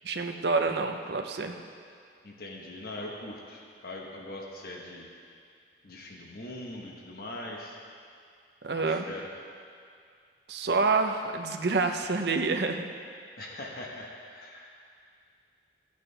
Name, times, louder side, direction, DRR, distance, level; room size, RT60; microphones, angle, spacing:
voice 1, 0.0-1.5 8.6-9.0 10.5-12.9, right 4 dB, 65° right, 5 dB, 0.7 m, -27 dB
voice 2, 2.2-5.1 5.8-7.8 8.7-9.3 13.4-14.7, left 1 dB, 55° left, -1 dB, 1.1 m, -41 dB
15.0 x 8.2 x 3.3 m, 2.3 s
head